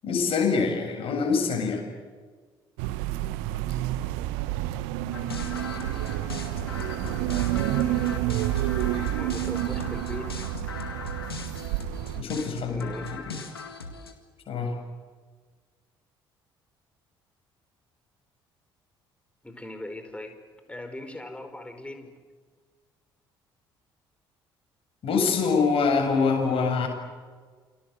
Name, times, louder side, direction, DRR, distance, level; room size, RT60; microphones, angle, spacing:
voice 1, 0.0-1.9 12.2-13.4 14.5-14.8 25.0-26.9, left 5 dB, 50° left, 2 dB, 7.9 m, -25 dB
sound 1, 2.8-12.2, right 15 dB, 70° right, 1.2 m, -29 dB
sound 2, 5.1-14.1, left 4 dB, 85° left, 2.0 m, -38 dB
voice 2, 7.1-8.4 9.1-10.3 12.6-13.1 19.4-20.4 20.7-22.1, left 1 dB, 10° left, 7 dB, 5.3 m, -40 dB
29.0 x 23.5 x 8.3 m, 1.5 s
figure-of-eight pair, 50°, 12 cm